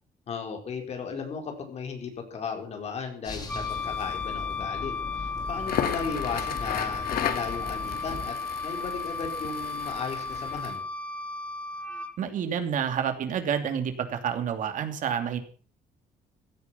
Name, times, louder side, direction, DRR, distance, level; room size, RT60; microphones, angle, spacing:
voice 1, 0.3-8.4 8.6-10.8, left 5 dB, 45° left, 4 dB, 4.8 m, -35 dB
sound 1, 3.2-8.3, left 3 dB, 25° left, 3.1 m, -40 dB
Wind instrument woodwind instrument, 3.5-12.1, left 4 dB, 10° left, 1.1 m, -34 dB
Crackle, 5.5-10.8, left 9 dB, 70° left, 2.3 m, -35 dB
voice 2, 12.2-15.4, right 8 dB, 55° right, 7 dB, 2.9 m, -29 dB
16.5 x 13.5 x 5.8 m, 0.42 s
cardioid pair, 180°, 16 cm